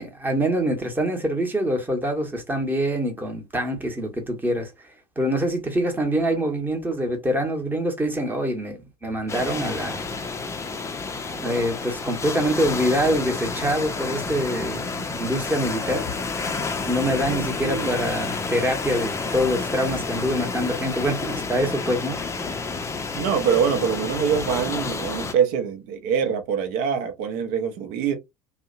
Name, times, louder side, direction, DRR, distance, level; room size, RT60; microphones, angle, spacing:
voice 1, 0.0-4.7 5.2-10.0 11.3-16.1 16.9-22.2, equal, 10° right, 1.0 m, -25 dB
sound 1, 9.3-25.3, left 4 dB, 15° left, 0.5 m, -30 dB
voice 2, 17.3-18.0 22.8-28.1, right 7 dB, 50° right, 0.8 m, -25 dB
2.6 x 2.1 x 2.5 m
figure-of-eight pair, 70°, 20 cm